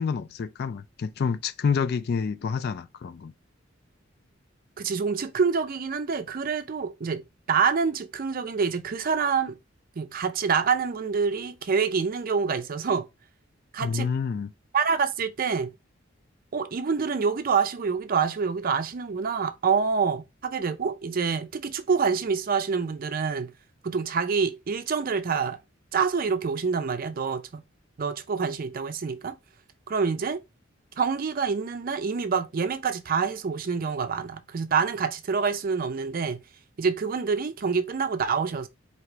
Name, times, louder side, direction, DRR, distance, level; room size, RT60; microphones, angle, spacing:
voice 1, 0.0-3.3 13.8-14.5, left 6 dB, 55° left, 0.4 m, -28 dB
voice 2, 4.8-7.2 7.5-9.5 10.0-13.1 13.7-14.1 14.7-15.7 16.5-23.5 23.8-25.6 25.9-27.6 28.0-29.3 29.9-30.4 31.0-36.4 36.8-38.7, right 5 dB, 45° right, 0.4 m, -26 dB
4.6 x 2.9 x 3.0 m
head